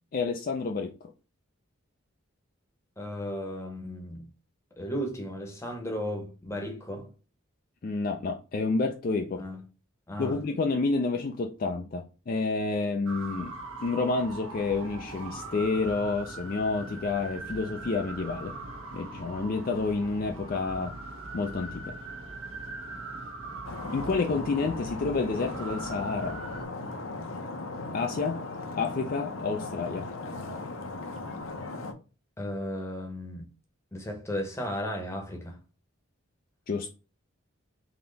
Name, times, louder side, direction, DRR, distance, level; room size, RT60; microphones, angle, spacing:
voice 1, 0.1-0.9 7.8-9.4 10.2-13.5 13.8-18.6 18.9-21.0 21.3-21.9 23.9-26.4 27.9-28.4 28.8-30.1 36.7-36.9, left 3 dB, 40° left, 0.4 m, -29 dB
voice 2, 3.0-4.2 4.8-7.1 9.3-9.6 10.1-10.4 32.4-33.4 33.9-35.6, equal, 15° left, 0.9 m, -35 dB
sound 1, 13.1-26.6, right 2 dB, 75° right, 1.1 m, -41 dB
Stream, 23.6-31.9, left 2 dB, 75° left, 0.7 m, -38 dB
3.9 x 2.9 x 3.9 m
head